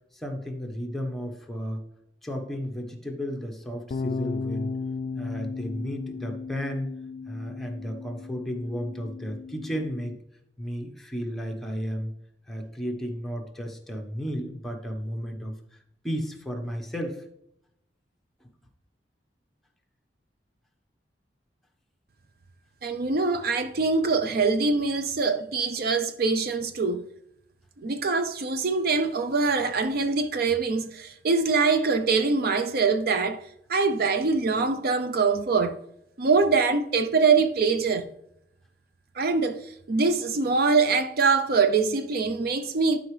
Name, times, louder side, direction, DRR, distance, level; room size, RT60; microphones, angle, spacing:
voice 1, 0.1-1.8 2.2-4.7 5.2-6.9 7.3-10.2 10.6-12.1 12.5-15.8 16.0-17.2, equal, ahead, 1.1 m, -33 dB
sound 1, 3.9-10.2, left 4 dB, 45° left, 0.3 m, -35 dB
voice 2, 22.8-27.0 27.8-33.4 33.7-35.7 36.2-38.1 39.2-43.0, right 4 dB, 60° right, 0.5 m, -24 dB
11.5 x 4.9 x 3.2 m
head